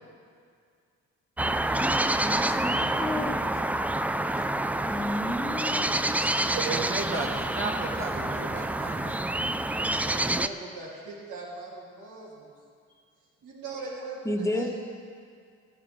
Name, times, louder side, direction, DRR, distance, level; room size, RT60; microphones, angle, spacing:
sound 1, 1.4-10.5, right 1 dB, 5° right, 0.3 m, -27 dB
voice 1, 2.2-3.4 4.9-6.3 14.2-14.7, left 1 dB, 10° left, 1 dB, 1.5 m, -32 dB
voice 2, 6.5-9.2, right 3 dB, 40° right, -1 dB, 2.3 m, -33 dB
voice 3, 9.8-12.5 12.9-13.0 13.4-14.8, right 3 dB, 85° right, -5 dB, 3.2 m, -41 dB
14.0 x 13.5 x 3.5 m, 2.2 s
cardioid pair, 90°, 30 cm